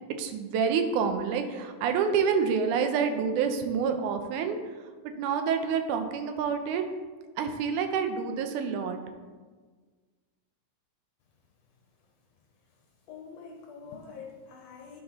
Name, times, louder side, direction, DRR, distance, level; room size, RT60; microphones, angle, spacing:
voice 1, 0.2-4.6 5.2-6.9 7.4-9.0, right 6 dB, 85° right, 7 dB, 2.1 m, -27 dB
voice 2, 13.1-15.0, left 5 dB, 70° left, 0 dB, 1.7 m, -45 dB
12.0 x 4.0 x 2.9 m, 1.4 s
omnidirectional pair, 3.5 m